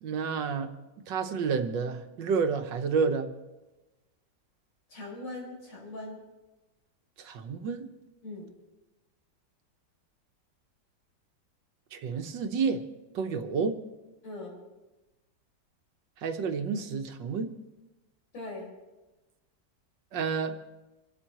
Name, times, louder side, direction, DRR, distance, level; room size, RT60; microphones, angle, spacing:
voice 1, 0.0-0.7 1.1-3.3 7.2-7.9 11.9-12.8 13.1-13.8 16.2-17.5 20.1-20.6, right 5 dB, 80° right, 7 dB, 1.7 m, -30 dB
voice 2, 4.9-6.2 8.2-8.5 14.2-14.6 18.3-18.7, left 2 dB, 90° left, -4 dB, 5.6 m, -40 dB
27.0 x 12.5 x 3.0 m, 1.1 s
omnidirectional pair, 1.9 m